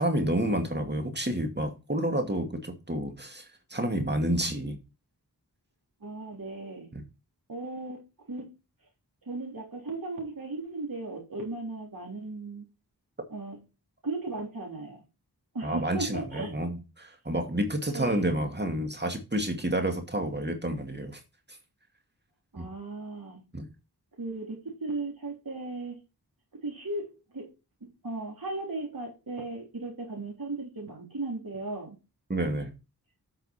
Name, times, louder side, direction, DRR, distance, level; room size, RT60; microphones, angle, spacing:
voice 1, 0.0-3.4 3.7-4.8 6.9-7.0 15.6-21.2 22.6-22.7 23.5-23.7 32.3-32.7, right 1 dB, 30° right, 2.2 m, -29 dB
voice 2, 6.0-6.9 7.5-8.5 9.2-12.6 13.3-13.6 14.0-15.0 15.5-16.5 17.9-18.2 22.5-23.4 24.2-26.0 26.5-27.5 27.8-32.0, right 2 dB, 65° right, 3.7 m, -36 dB
8.8 x 5.6 x 4.3 m
wide cardioid pair, 50°, 37 cm